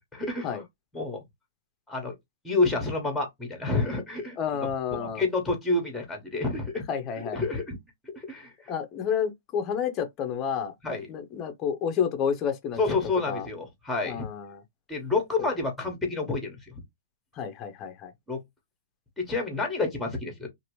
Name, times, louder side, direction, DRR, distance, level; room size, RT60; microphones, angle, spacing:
voice 1, 0.1-0.6 0.9-1.2 1.9-2.1 2.4-4.4 4.9-6.8 7.3-7.8 8.1-8.7 10.8-11.1 12.8-14.3 14.9-16.7 18.3-18.4 19.2-20.5, left 3 dB, 5° left, 1.1 m, -29 dB
voice 2, 4.4-5.2 6.9-7.4 8.7-10.7 11.1-12.8 13.3-13.5 14.1-14.6 17.4-18.1, left 7 dB, 25° left, 0.6 m, -30 dB
2.8 x 2.5 x 3.0 m
hypercardioid pair, 155°, 0 cm